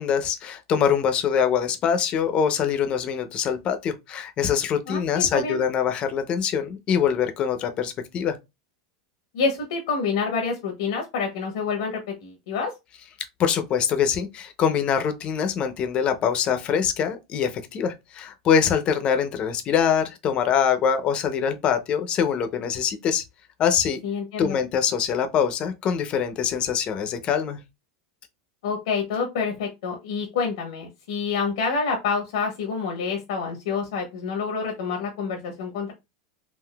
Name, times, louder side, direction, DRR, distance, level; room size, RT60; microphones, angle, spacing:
voice 1, 0.0-8.4 13.4-23.2 23.6-24.0 24.4-27.6, left 7 dB, 35° left, 0.6 m, -24 dB
voice 2, 4.9-5.6 9.3-12.7 24.0-24.6 28.6-35.9, left 5 dB, 75° left, 0.8 m, -27 dB
3.8 x 2.5 x 2.2 m
supercardioid pair, 120°, 3 cm